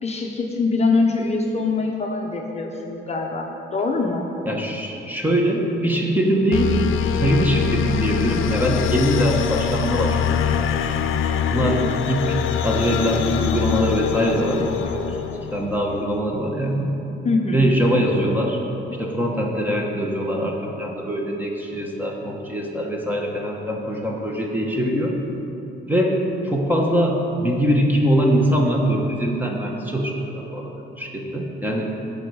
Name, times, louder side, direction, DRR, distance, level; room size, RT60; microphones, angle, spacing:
voice 1, 0.0-4.3 17.2-17.7, left 3 dB, 35° left, 1 dB, 0.7 m, -23 dB
voice 2, 4.5-6.7 7.2-10.5 11.5-12.4 12.6-15.2 15.5-16.9 17.5-18.6 19.0-25.2 25.9-26.2 26.4-30.7 31.0-31.9, equal, 10° right, 0 dB, 1.1 m, -22 dB
sound 1, 6.5-15.9, left 8 dB, 90° left, 0.5 m, -24 dB
14.5 x 5.4 x 4.7 m, 2.9 s
cardioid pair, 150°, 20 cm